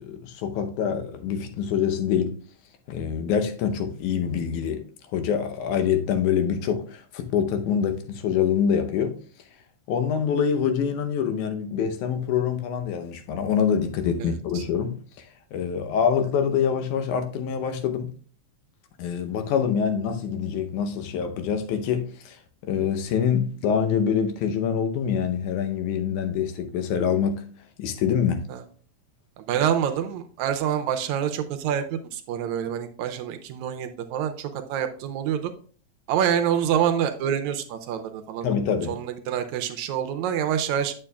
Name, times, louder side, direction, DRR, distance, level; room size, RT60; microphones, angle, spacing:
voice 1, 0.0-2.4 2.9-4.9 5.1-9.2 9.9-15.3 15.5-18.1 19.0-27.4 27.8-28.5 38.4-39.0, left 7 dB, 90° left, 2.3 m, -25 dB
voice 2, 14.2-14.6 28.5-28.6 29.4-35.5 36.1-38.5 38.9-40.9, right 9 dB, 80° right, 2.0 m, -27 dB
8.6 x 6.9 x 2.3 m
omnidirectional pair, 3.4 m